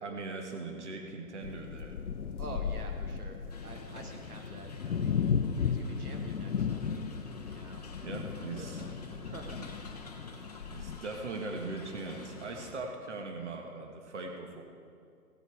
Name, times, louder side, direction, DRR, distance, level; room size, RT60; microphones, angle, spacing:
voice 1, 0.0-2.0 2.5-2.6 8.0-8.8 10.7-14.6, right 3 dB, 45° right, 3 dB, 1.5 m, -40 dB
sound 1, 1.4-11.0, left 6 dB, 65° left, 0.8 m, -35 dB
voice 2, 2.4-3.4 3.6-5.2 5.6-6.8 7.5-7.8 8.2-8.9 9.2-9.9 11.5-11.7, right 3 dB, 65° right, 3 dB, 1.3 m, -48 dB
sound 2, 3.5-12.7, left 3 dB, 25° left, 0.8 m, -48 dB
17.0 x 7.8 x 4.8 m, 2.3 s
hypercardioid pair, 165°, 47 cm